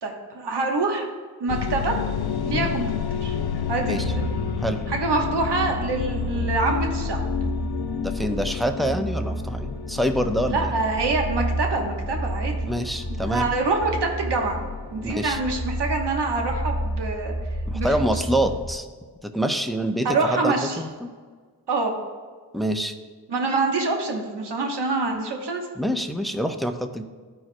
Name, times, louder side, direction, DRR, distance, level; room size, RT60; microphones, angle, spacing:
voice 1, 0.0-1.1 1.4-2.0 2.5-3.4 3.7-4.2 4.9-7.2 10.5-12.7 13.2-14.6 14.9-17.4 17.7-17.9 20.0-20.8 21.7-21.9 23.3-25.7, right 3 dB, 75° right, 2 dB, 1.1 m, -25 dB
sound 1, 1.5-15.5, left 8 dB, 65° left, 0.5 m, -31 dB
sound 2, 3.2-18.8, equal, 20° left, 0.9 m, -31 dB
voice 2, 8.0-10.7 12.7-13.5 15.0-15.4 17.7-18.9 19.3-21.1 22.5-22.9 25.8-27.0, equal, ahead, 6 dB, 0.7 m, -26 dB
13.5 x 4.6 x 2.2 m, 1.5 s
cardioid pair, 45°, 42 cm